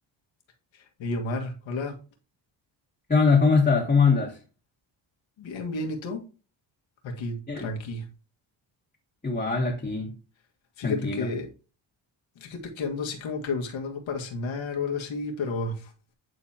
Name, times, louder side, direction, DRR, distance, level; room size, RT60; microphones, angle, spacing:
voice 1, 0.7-2.0 5.4-6.2 7.0-8.1 10.8-11.5 12.4-15.9, left 3 dB, 70° left, 1.8 m, -32 dB
voice 2, 3.1-4.4 7.5-7.7 9.2-10.2 10.8-11.3, left 4 dB, 15° left, 1.5 m, -22 dB
9.4 x 4.1 x 2.9 m
cardioid pair, 100°, 47 cm